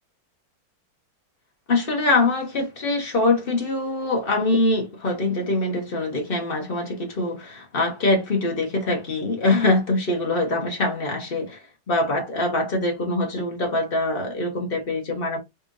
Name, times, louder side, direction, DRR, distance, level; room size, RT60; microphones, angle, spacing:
voice 1, 1.7-15.4, left 2 dB, 35° left, 0.9 m, -23 dB
4.1 x 3.5 x 2.5 m
omnidirectional pair, 2.4 m